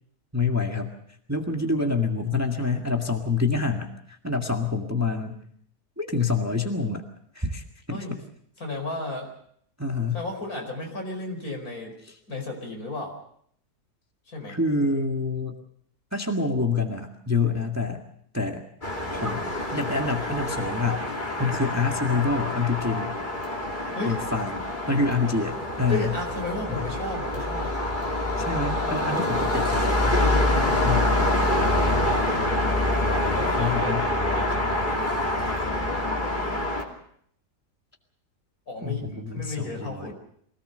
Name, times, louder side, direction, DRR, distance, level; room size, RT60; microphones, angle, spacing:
voice 1, 0.3-1.0 1.3-5.4 6.0-7.1 7.3-8.0 9.8-10.2 12.0-12.2 14.5-15.6 16.1-18.0 18.3-18.6 19.1-19.5 19.7-21.1 21.4-23.1 24.0-24.6 24.9-26.1 26.7-26.9 28.4-30.2 30.8-31.1 33.6-34.1 38.8-40.1, left 3 dB, 10° right, 2 dB, 1.8 m, -27 dB
voice 2, 8.6-9.3 10.1-11.9 12.3-13.2 14.3-14.6 24.0-24.2 25.9-27.8 29.1-29.5 30.2-32.4 33.0-35.0 35.4-36.7 38.7-40.1, left 2 dB, 60° left, 3 dB, 5.4 m, -34 dB
sound 1, 18.8-36.8, left 1 dB, 30° left, 3.0 m, -26 dB
24.0 x 18.0 x 6.7 m, 0.67 s
omnidirectional pair, 1.7 m